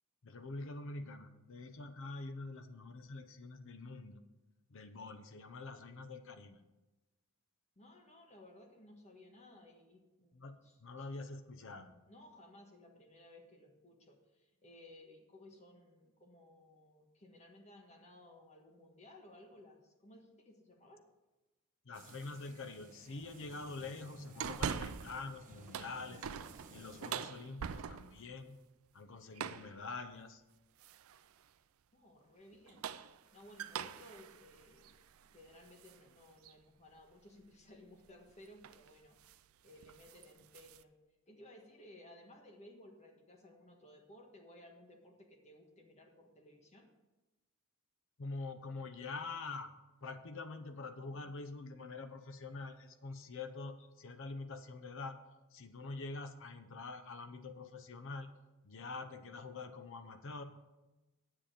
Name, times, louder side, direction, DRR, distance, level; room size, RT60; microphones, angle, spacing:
voice 1, 0.2-4.2 4.7-6.6 10.3-12.0 21.8-26.3 26.7-28.6 28.9-30.4 40.2-40.3 48.2-49.7 50.0-55.2 55.5-58.3 58.6-60.4, left 3 dB, 60° left, 9 dB, 0.7 m, -46 dB
voice 2, 7.8-10.3 10.6-11.1 12.1-21.0 31.9-32.8 33.3-34.9 35.3-39.2 39.6-40.9 41.3-46.9, left 1 dB, 30° left, 2 dB, 1.4 m, -58 dB
sound 1, 21.9-27.1, right 3 dB, 40° right, 1.1 m, -57 dB
sound 2, 24.4-25.2 25.6-28.3 29.3-29.8 30.8-31.2 32.5-36.0 36.4-36.5 38.1-38.3 38.6-38.9 39.2-39.4 39.8-40.8, right 7 dB, 65° right, 0.4 m, -43 dB
10.0 x 7.2 x 5.1 m, 1.1 s
head